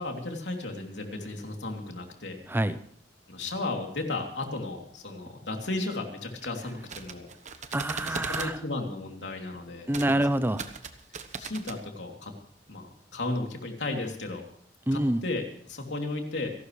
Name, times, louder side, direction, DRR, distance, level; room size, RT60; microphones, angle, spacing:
voice 1, 0.0-2.4 3.3-7.3 7.6-7.7 8.0-10.2 11.4-12.3 12.7-14.4 14.9-16.5, left 2 dB, 85° left, 2 dB, 3.0 m, -34 dB
voice 2, 2.5-2.8 7.7-8.6 9.9-10.7 14.9-15.2, right 1 dB, 10° right, 13 dB, 0.6 m, -26 dB
sound 1, 6.7-8.5 9.9-10.1 10.4-11.8, right 5 dB, 45° right, 1.2 m, -38 dB
28.0 x 12.0 x 3.3 m, 0.62 s
head